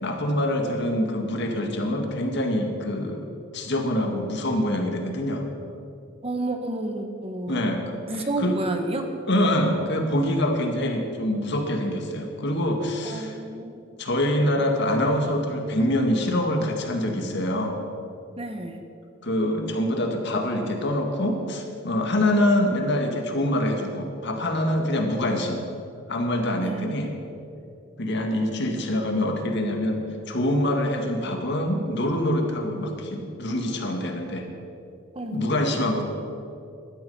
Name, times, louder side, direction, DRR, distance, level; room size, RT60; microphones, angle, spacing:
voice 1, 0.0-5.4 7.5-8.6 9.3-13.4 14.0-17.8 19.2-25.6 26.1-27.1 28.0-30.0 30.3-34.5 35.3-36.1, left 1 dB, 60° left, 3 dB, 1.9 m, -25 dB
voice 2, 6.2-7.6 8.1-9.1 13.0-13.8 18.4-18.8 26.6-27.0 35.1-35.5, right 2 dB, 30° right, 5 dB, 1.2 m, -30 dB
15.0 x 12.0 x 5.6 m, 2.6 s
head